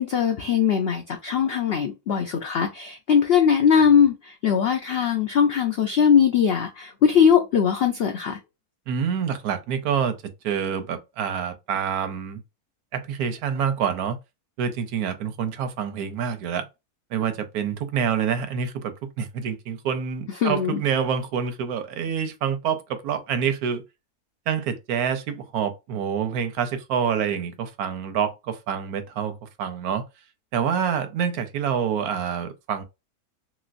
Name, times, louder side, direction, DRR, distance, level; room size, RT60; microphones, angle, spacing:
voice 1, 0.0-8.4 20.4-20.8, left 7 dB, 80° left, 0.5 m, -20 dB
voice 2, 8.9-10.2 10.4-12.4 12.9-14.2 14.6-16.6 17.1-23.8 24.5-30.0 30.5-32.8, right 7 dB, 80° right, 1.1 m, -27 dB
3.0 x 3.0 x 2.4 m
omnidirectional pair, 1.6 m